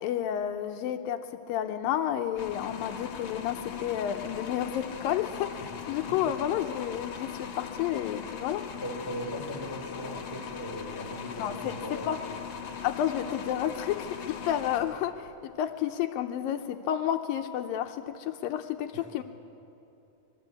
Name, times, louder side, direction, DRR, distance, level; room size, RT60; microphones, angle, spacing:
voice 1, 0.0-8.7 11.4-12.3 12.8-19.2, left 10 dB, 80° left, 7 dB, 2.4 m, -31 dB
sound 1, 2.4-15.4, left 8 dB, 55° left, 2.2 m, -40 dB
voice 2, 8.8-12.3 18.9-19.0, equal, 5° right, 0 dB, 3.0 m, -39 dB
24.0 x 22.5 x 8.4 m, 2.8 s
omnidirectional pair, 4.2 m